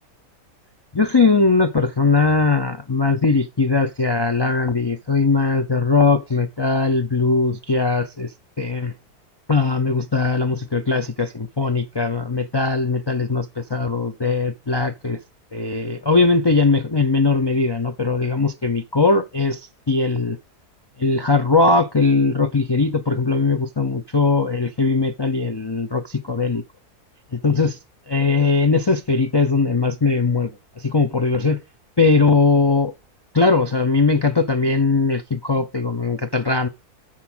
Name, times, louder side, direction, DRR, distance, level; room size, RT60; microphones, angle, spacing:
voice 1, 0.9-8.9 9.5-15.2 15.5-19.6 19.9-20.4 21.0-26.6 27.3-27.8 28.1-30.5 30.8-31.6 32.0-32.9 33.3-36.7, left 3 dB, 40° left, 0.3 m, -20 dB
9.6 x 4.5 x 6.1 m
omnidirectional pair, 1.7 m